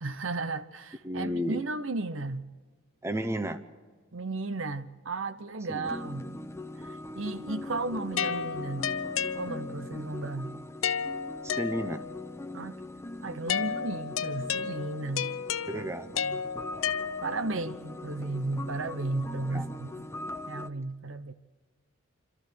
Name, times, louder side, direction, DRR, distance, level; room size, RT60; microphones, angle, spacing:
voice 1, 0.0-2.5 4.1-6.3 6.8-8.9 9.3-10.6 12.5-12.8 13.2-15.3 15.7-15.9 16.2-16.4 17.2-19.9 20.5-21.3, right 3 dB, 70° right, 0.9 m, -34 dB
voice 2, 1.0-1.6 3.0-3.6 5.7-5.9 11.4-12.0 15.7-16.2 17.6-17.7 19.4-19.7, equal, 15° right, 0.8 m, -33 dB
sound 1, 5.8-20.7, left 2 dB, 15° left, 0.7 m, -41 dB
sound 2, 8.2-9.9 10.8-12.2 13.5-17.6, left 7 dB, 75° left, 0.7 m, -33 dB
26.0 x 13.5 x 7.7 m
head